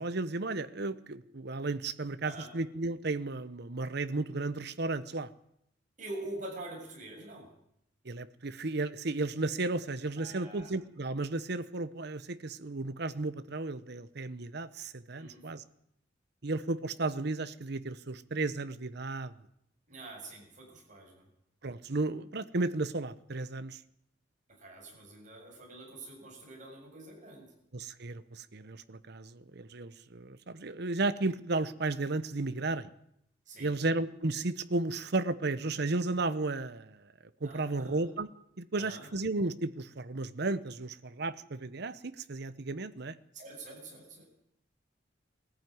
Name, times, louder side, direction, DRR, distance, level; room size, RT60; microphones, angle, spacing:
voice 1, 0.0-5.3 8.0-15.6 16.4-19.3 21.6-23.8 27.7-32.9 33.6-37.0 37.4-38.3 38.6-43.2, right 2 dB, 60° right, 13 dB, 0.9 m, -34 dB
voice 2, 6.0-7.5 10.2-10.7 15.1-15.5 19.9-21.3 24.5-27.5 33.5-33.8 37.4-38.1 38.7-39.1 43.3-44.3, right 2 dB, 40° right, 0 dB, 7.4 m, -45 dB
20.0 x 14.0 x 9.4 m, 0.76 s
head